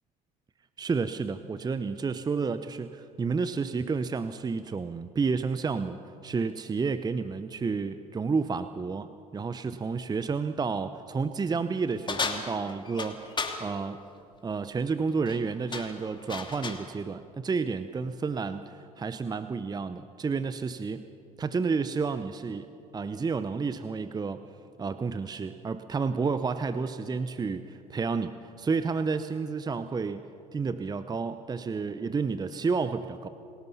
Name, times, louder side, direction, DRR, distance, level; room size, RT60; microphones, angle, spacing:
voice 1, 0.8-6.0 6.2-13.3 13.6-14.0 14.4-21.1 21.4-24.4 24.8-30.2 30.5-33.3, right 4 dB, 20° right, 12 dB, 0.8 m, -30 dB
sound 1, 12.1-13.6 15.1-15.4 15.7-16.9, left 4 dB, 25° left, 2.7 m, -34 dB
29.5 x 19.0 x 5.7 m, 2.6 s
figure-of-eight pair, 65°, 19 cm